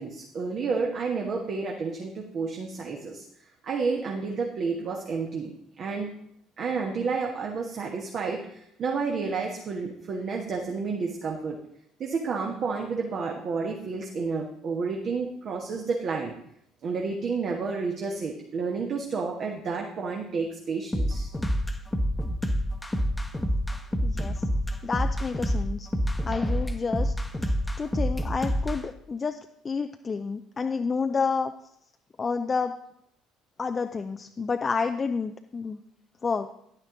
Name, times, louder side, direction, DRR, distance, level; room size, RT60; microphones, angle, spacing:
voice 1, 0.0-3.2 3.6-5.5 5.8-6.1 6.6-11.6 12.0-16.3 16.8-21.3, right 4 dB, 45° right, 1 dB, 1.4 m, -30 dB
sound 1, 20.9-28.8, equal, 10° left, 1.1 m, -27 dB
voice 2, 24.0-24.4 24.8-25.9 26.3-27.1 27.8-29.4 29.6-31.5 32.2-32.8 33.6-35.8 36.2-36.5, left 5 dB, 30° left, 7 dB, 0.5 m, -29 dB
10.5 x 9.5 x 3.8 m, 0.74 s
figure-of-eight pair, 55°, 0 cm